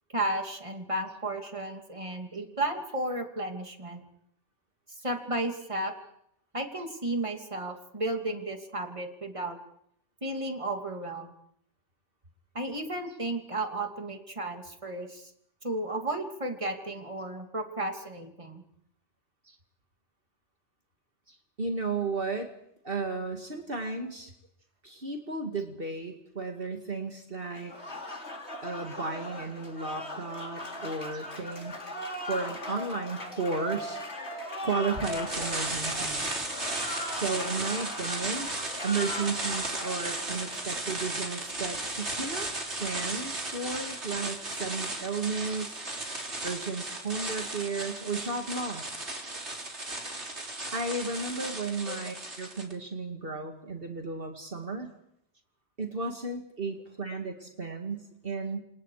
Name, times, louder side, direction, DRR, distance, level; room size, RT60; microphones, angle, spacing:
voice 1, 0.1-4.0 5.0-5.9 6.5-9.6 10.2-11.3 12.5-15.3 15.6-18.6 19.5-19.6 21.3-21.4 31.1-31.2 50.5-50.6 51.9-52.0, right 1 dB, 30° right, 4 dB, 2.9 m, -33 dB
voice 2, 21.6-22.5 22.8-24.3 24.8-27.7 28.6-31.8 32.3-34.0 34.6-36.4 37.1-38.5 38.8-42.5 42.8-45.8 46.4-49.0 50.4-54.9 55.8-58.6, right 3 dB, 55° right, 3 dB, 2.4 m, -34 dB
Applause, 27.6-41.2, left 1 dB, 75° left, 3.8 m, -39 dB
sound 1, 35.0-52.7, right 2 dB, 80° right, 4.0 m, -35 dB
28.5 x 28.0 x 4.9 m, 0.74 s
omnidirectional pair, 1.1 m